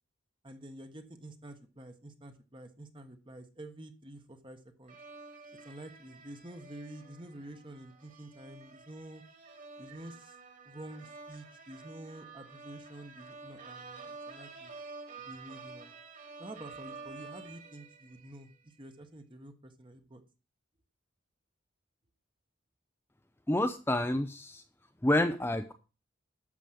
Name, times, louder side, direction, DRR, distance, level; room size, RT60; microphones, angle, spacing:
voice 1, 0.4-5.0 5.6-9.2 9.8-10.4 10.6-14.7 15.2-15.9 16.4-20.2, right 1 dB, 25° right, 7 dB, 1.3 m, -48 dB
sound 1, 4.9-18.6, right 4 dB, 40° right, 2.6 m, -50 dB
voice 2, 23.5-24.6 25.0-25.7, left 1 dB, 10° left, 7 dB, 0.6 m, -28 dB
12.5 x 5.1 x 7.7 m, 0.33 s
head